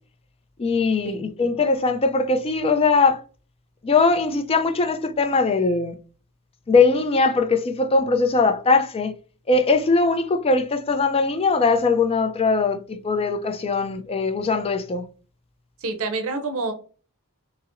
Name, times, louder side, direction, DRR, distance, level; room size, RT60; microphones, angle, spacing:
voice 1, 0.6-3.2 3.8-5.9 6.7-9.1 9.5-15.1, left 4 dB, 25° left, 0.4 m, -20 dB
voice 2, 15.8-16.7, right 3 dB, 65° right, 0.6 m, -28 dB
5.4 x 2.0 x 2.5 m
head